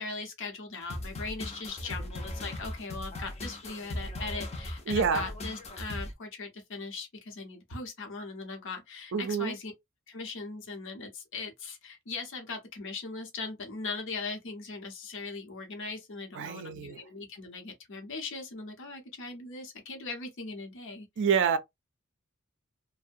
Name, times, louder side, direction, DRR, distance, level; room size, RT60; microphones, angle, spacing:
voice 1, 0.0-9.7 10.1-21.1, left 3 dB, 60° left, 0.8 m, -39 dB
sound 1, 0.9-6.1, left 1 dB, 30° left, 0.6 m, -38 dB
voice 2, 4.9-5.3 9.1-9.6 16.3-17.0 21.2-21.6, right 6 dB, 60° right, 0.4 m, -27 dB
2.6 x 2.0 x 2.5 m
head